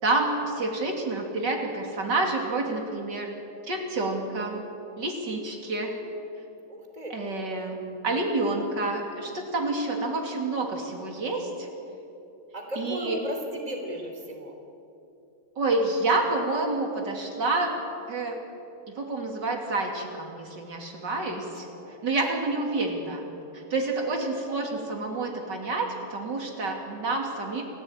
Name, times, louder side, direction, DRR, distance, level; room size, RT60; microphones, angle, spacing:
voice 1, 0.0-3.3 3.7-4.7 5.0-6.0 7.1-7.8 8.0-11.7 12.8-13.2 15.6-17.7 18.1-18.4 18.9-23.2 23.5-27.6, right 2 dB, 75° right, 1 dB, 3.4 m, -28 dB
voice 2, 6.7-7.2 12.5-14.6 21.7-22.1, equal, 20° right, 3 dB, 3.3 m, -36 dB
28.5 x 16.0 x 8.9 m, 2.7 s
omnidirectional pair, 1.9 m